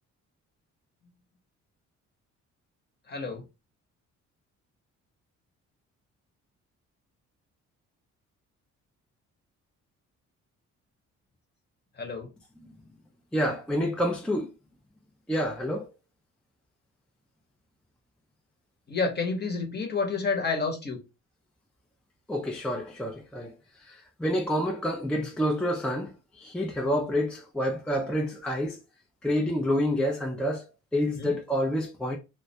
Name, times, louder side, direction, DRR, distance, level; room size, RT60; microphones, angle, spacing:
voice 1, 3.1-3.4 12.0-12.3 18.9-21.0 31.2-31.3, left 4 dB, 35° left, 0.8 m, -29 dB
voice 2, 13.3-14.5 15.3-15.9 22.3-23.5 23.8-28.8 29.2-32.2, equal, 5° left, 0.4 m, -28 dB
2.2 x 2.1 x 2.6 m
cardioid pair, 90°, 30 cm